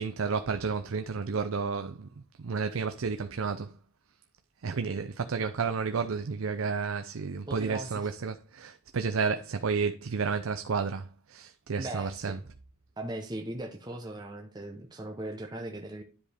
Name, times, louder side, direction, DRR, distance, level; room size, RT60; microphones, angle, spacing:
voice 1, 0.0-3.7 4.6-12.4, right 5 dB, 70° right, 0.5 m, -31 dB
voice 2, 7.5-8.1 11.8-12.5 13.0-16.0, right 1 dB, 20° right, 0.8 m, -39 dB
10.5 x 5.0 x 3.4 m
head